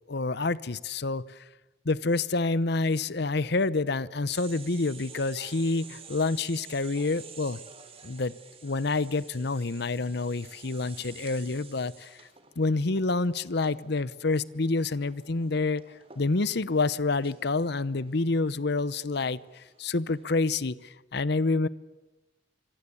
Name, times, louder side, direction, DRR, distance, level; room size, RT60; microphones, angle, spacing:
voice 1, 0.1-1.4 1.8-7.6 8.0-8.3 8.6-12.2 12.6-15.8 16.2-21.7, left 3 dB, 65° left, 18 dB, 0.9 m, -28 dB
sound 1, 4.3-20.3, right 6 dB, 35° right, 3.5 m, -51 dB
26.0 x 25.0 x 8.5 m, 1.1 s
head